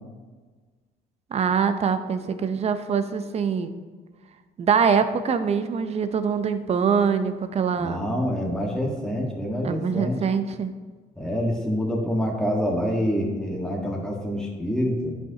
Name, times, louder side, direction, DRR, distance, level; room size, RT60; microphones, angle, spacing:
voice 1, 1.3-3.8 4.6-8.0 9.6-10.7, right 6 dB, 40° right, 10 dB, 0.6 m, -24 dB
voice 2, 7.8-10.2 11.2-15.2, equal, 5° left, -1 dB, 1.4 m, -26 dB
10.5 x 5.7 x 2.8 m, 1.4 s
cardioid pair, 110°, 17 cm